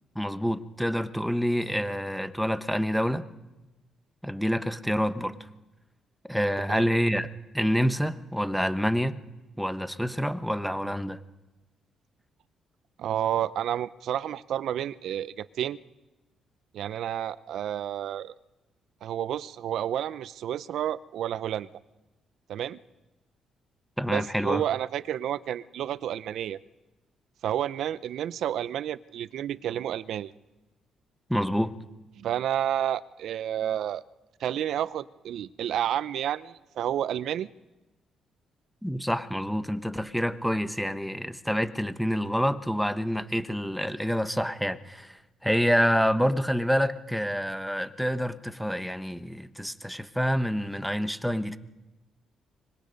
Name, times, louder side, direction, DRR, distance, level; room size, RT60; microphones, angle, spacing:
voice 1, 0.1-3.2 4.2-5.4 6.3-7.3 7.5-9.2 9.6-11.2 24.0-24.6 31.3-31.7 38.8-45.1 45.4-51.6, equal, ahead, 1.0 m, -27 dB
voice 2, 13.0-15.8 16.7-18.3 19.0-21.7 22.5-22.8 24.1-26.6 27.4-30.3 32.2-34.0 34.4-37.5, right 10 dB, 75° right, 0.6 m, -30 dB
25.0 x 21.0 x 5.3 m
cardioid pair, 90°, 0 cm